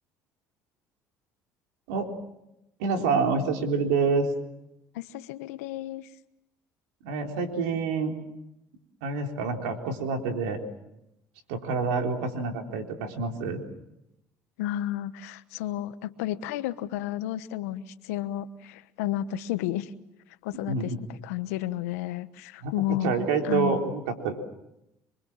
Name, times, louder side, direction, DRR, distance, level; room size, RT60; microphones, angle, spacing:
voice 1, 2.8-4.3 7.0-8.1 9.0-10.6 11.5-13.6 20.7-21.0 22.6-22.7 23.0-24.3, right 4 dB, 90° right, 4 dB, 3.9 m, -27 dB
voice 2, 4.9-6.1 14.6-19.9 20.4-23.2 23.4-23.8, left 13 dB, 90° left, 13 dB, 1.2 m, -32 dB
27.0 x 23.5 x 7.4 m, 0.85 s
supercardioid pair, 75°, 8 cm